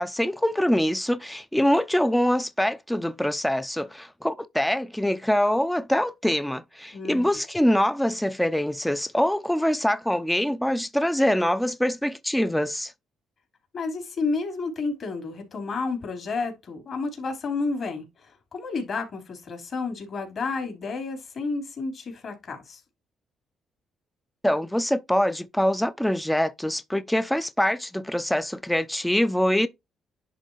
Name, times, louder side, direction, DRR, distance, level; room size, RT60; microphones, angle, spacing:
voice 1, 0.0-12.9 24.4-29.7, equal, 5° left, 0.6 m, -24 dB
voice 2, 6.9-7.3 13.7-22.8, left 4 dB, 50° left, 4.0 m, -31 dB
11.0 x 3.7 x 3.3 m
cardioid pair, 90°, 0 cm